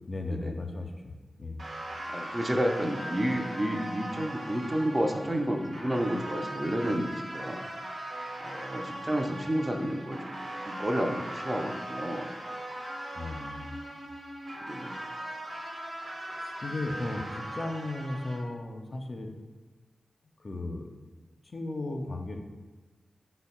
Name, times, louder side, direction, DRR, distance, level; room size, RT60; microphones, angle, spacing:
voice 1, 0.1-1.6 13.1-13.8 16.4-19.3 20.4-20.9 21.4-22.4, left 2 dB, 50° left, 3 dB, 0.4 m, -36 dB
sound 1, 1.6-18.4, right 1 dB, 65° right, 0.7 m, -39 dB
voice 2, 2.1-7.6 8.4-12.3 14.6-15.0, equal, 25° right, 3 dB, 0.4 m, -31 dB
4.3 x 2.1 x 4.1 m, 1.2 s
cardioid pair, 55°, 0 cm